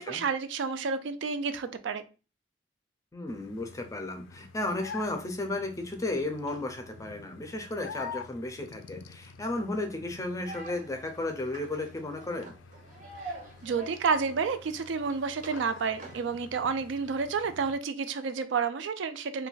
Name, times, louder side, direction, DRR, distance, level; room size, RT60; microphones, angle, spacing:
voice 1, 0.0-2.0 13.2-13.3 13.6-19.5, right 5 dB, 80° right, 11 dB, 0.4 m, -30 dB
voice 2, 3.1-12.5, left 2 dB, 15° left, 5 dB, 0.4 m, -34 dB
sound 1, 3.3-17.8, left 5 dB, 85° left, 0.3 m, -48 dB
sound 2, 10.4-16.3, right 2 dB, 45° right, 0.7 m, -47 dB
2.5 x 2.2 x 3.8 m, 0.33 s
head